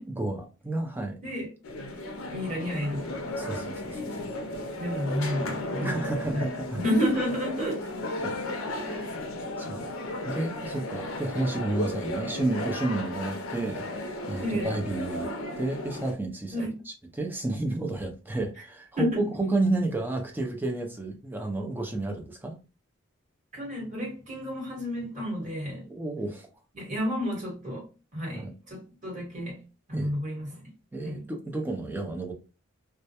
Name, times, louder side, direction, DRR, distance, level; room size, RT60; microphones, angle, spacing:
voice 1, 0.1-1.2 2.5-2.6 3.4-4.2 5.8-6.8 8.2-8.3 8.9-9.2 9.6-9.8 10.2-15.3 15.6-22.6 25.9-26.5 28.3-28.5 29.9-30.1 30.9-32.3, right 2 dB, 10° right, 0.3 m, -31 dB
sound 1, 1.6-16.1, left 1 dB, 75° left, 0.5 m, -35 dB
voice 2, 2.3-3.2 4.7-6.0 6.2-6.4 6.7-7.9 14.4-14.7 16.5-16.7 19.0-19.2 23.5-25.8 26.7-27.9 28.1-29.6 29.9-30.6 31.0-31.2, equal, 35° right, 1.2 m, -31 dB
2.2 x 2.0 x 2.8 m
head